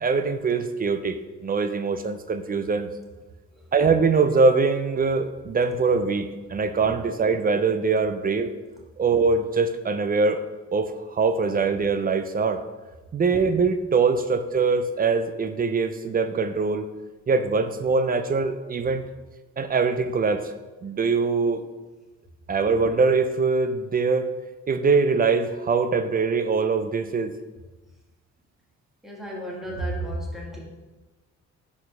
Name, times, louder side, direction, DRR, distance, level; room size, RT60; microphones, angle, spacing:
voice 1, 0.0-1.2 1.4-2.9 3.7-8.5 9.0-10.4 10.7-12.6 13.1-16.9 17.3-19.0 19.6-20.5 20.8-21.6 22.5-24.3 24.7-27.3, right 4 dB, 30° right, 10 dB, 0.4 m, -23 dB
voice 2, 29.0-30.6, right 1 dB, ahead, -3 dB, 1.7 m, -32 dB
4.6 x 4.3 x 5.5 m, 1.2 s
cardioid pair, 90°, 30 cm